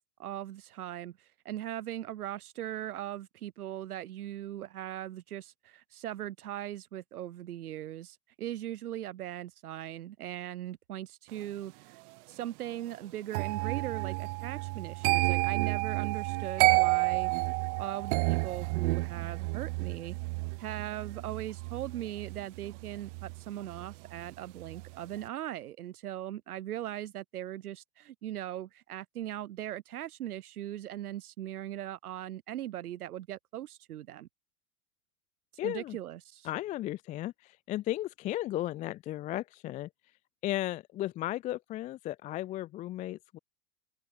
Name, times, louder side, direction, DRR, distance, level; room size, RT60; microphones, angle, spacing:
voice 1, 0.2-12.0 12.3-17.3 17.8-20.2 20.6-34.3 35.6-36.5, right 12 dB, 90° right, 6.2 m, -39 dB
sound 1, 13.3-24.3 24.6-25.0, right 29 dB, 55° right, 2.3 m, -30 dB
voice 2, 35.6-36.0 36.4-39.9 40.4-43.4, left 14 dB, 20° left, 0.4 m, -35 dB
supercardioid pair, 145°, 43 cm